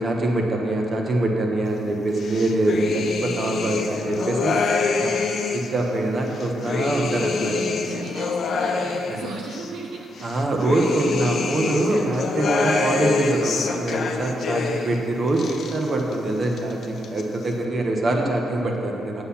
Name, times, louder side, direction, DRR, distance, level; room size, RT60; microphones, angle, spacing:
voice 1, 0.0-4.7 5.0-5.1 5.5-7.6 9.1-9.3 10.2-19.2, right 2 dB, 40° right, 1 dB, 1.4 m, -24 dB
sound 1, 2.2-5.8 6.3-9.7 10.2-15.0 15.3-16.2 16.4-17.2, left 4 dB, 55° left, 0.7 m, -26 dB
voice 2, 7.5-10.1 17.7-18.1, right 3 dB, 75° right, 0 dB, 0.8 m, -36 dB
8.3 x 7.8 x 5.8 m, 3.0 s
cardioid pair, 90°, 0 cm